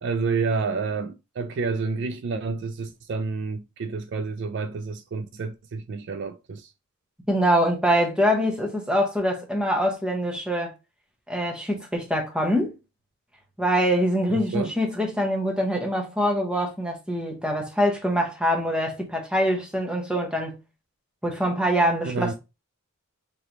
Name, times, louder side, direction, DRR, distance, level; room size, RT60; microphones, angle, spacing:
voice 1, 0.0-6.7 14.5-14.7 22.0-22.3, right 4 dB, 50° right, 0.3 m, -29 dB
voice 2, 7.3-10.7 11.3-12.7 13.6-20.6 21.2-22.3, equal, 5° right, 0.9 m, -24 dB
3.8 x 3.3 x 2.8 m
head